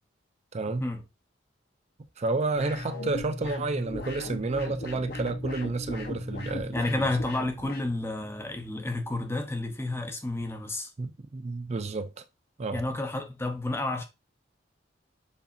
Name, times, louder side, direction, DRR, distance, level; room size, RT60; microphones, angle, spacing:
voice 1, 0.5-0.9 2.2-7.1 11.0-12.1 12.6-12.8, right 3 dB, 35° right, 0.4 m, -30 dB
sound 1, 2.5-7.9, left 1 dB, 55° left, 1.0 m, -36 dB
voice 2, 6.7-10.9 12.7-14.0, left 2 dB, 15° left, 0.8 m, -30 dB
7.1 x 2.7 x 2.6 m
head